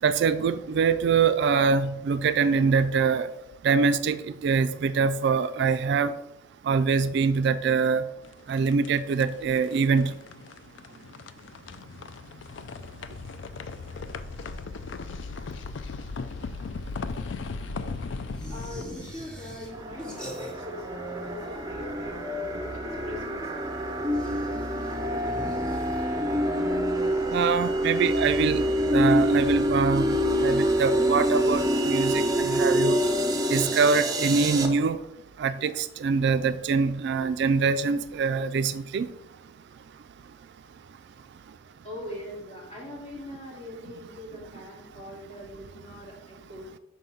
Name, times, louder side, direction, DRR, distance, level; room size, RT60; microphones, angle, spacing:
voice 1, 0.0-3.3 3.6-6.2 6.6-8.1 8.5-10.2 27.3-33.0 33.5-35.0 35.4-39.1, right 5 dB, 60° right, 0.3 m, -24 dB
sound 1, 8.2-20.3, left 4 dB, 65° left, 0.4 m, -38 dB
sound 2, 18.3-20.9 21.2-22.0 24.0-26.5, equal, 5° left, 0.9 m, -43 dB
voice 2, 18.5-24.5 41.8-46.7, equal, 35° left, 2.4 m, -41 dB
sound 3, 19.7-34.7, equal, 20° right, 0.6 m, -26 dB
5.1 x 3.8 x 5.6 m
head